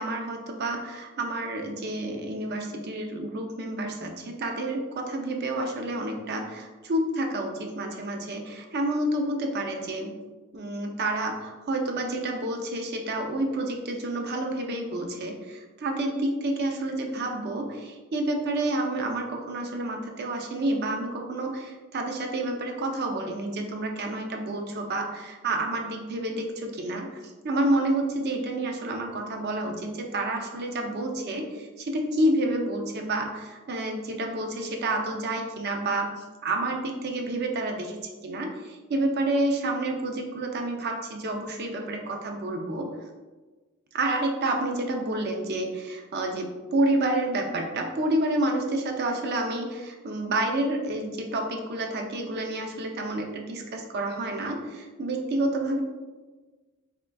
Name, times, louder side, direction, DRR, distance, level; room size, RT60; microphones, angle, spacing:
voice 1, 0.0-10.1 10.5-42.9 43.9-55.8, right 1 dB, 50° right, 2 dB, 0.5 m, -29 dB
3.7 x 3.2 x 2.2 m, 1.3 s
head